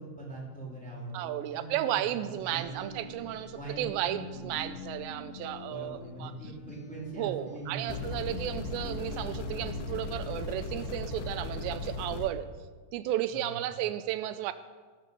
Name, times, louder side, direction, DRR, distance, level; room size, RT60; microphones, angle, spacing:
voice 1, 0.0-2.8 3.5-3.9 4.3-4.7 5.7-8.8 13.3-13.7, right 2 dB, ahead, -4 dB, 2.6 m, -43 dB
voice 2, 1.1-6.3 7.2-12.5 12.9-14.5, right 12 dB, 85° right, 12 dB, 2.8 m, -33 dB
sound 1, 2.0-10.7, left 2 dB, 55° left, 1.6 m, -46 dB
sound 2, 7.9-12.3, left 3 dB, 85° left, 3.4 m, -37 dB
18.0 x 8.4 x 6.8 m, 1.4 s
omnidirectional pair, 5.0 m